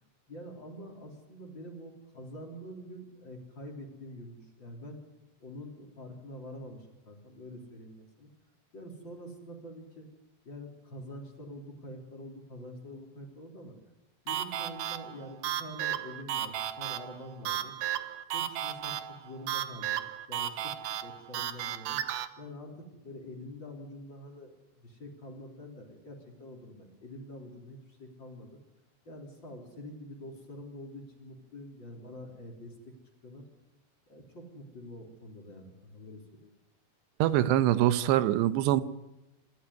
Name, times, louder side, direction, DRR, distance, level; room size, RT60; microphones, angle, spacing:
voice 1, 0.3-5.0 5.4-8.3 8.7-10.1 10.4-13.7 14.2-17.7 18.3-20.0 20.3-20.8 21.0-22.0 22.4-28.6 29.1-32.9 33.2-33.4 34.1-36.5, equal, 30° left, 2 dB, 3.6 m, -46 dB
sound 1, 14.3-22.3, right 11 dB, 70° right, 2.0 m, -34 dB
voice 2, 37.2-38.8, right 13 dB, 90° right, 14 dB, 3.1 m, -24 dB
26.5 x 13.0 x 9.6 m, 0.99 s
omnidirectional pair, 4.8 m